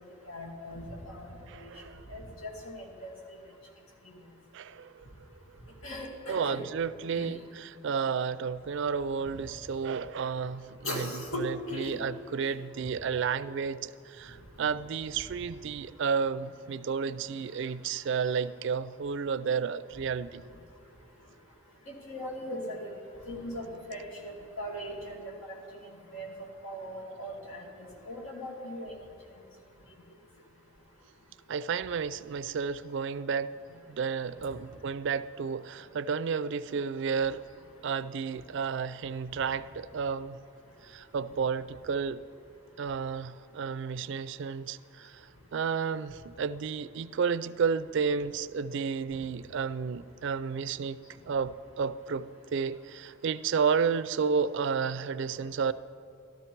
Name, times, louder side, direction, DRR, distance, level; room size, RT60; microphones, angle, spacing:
voice 1, 0.3-1.7 2.1-3.1 5.8-6.6 7.2-7.3 9.3-9.4 10.8-12.0 21.9-22.9 23.3-25.2 26.1-26.3 26.6-28.9, equal, 90° left, 2.2 m, -39 dB
voice 2, 1.5-2.1 4.5-5.0 6.3-7.4 7.8-11.1 11.4-20.4 31.5-33.5 33.9-37.4 37.8-40.4 40.8-42.2 42.8-55.7, right 6 dB, 60° right, 0.4 m, -32 dB
13.0 x 13.0 x 4.5 m
head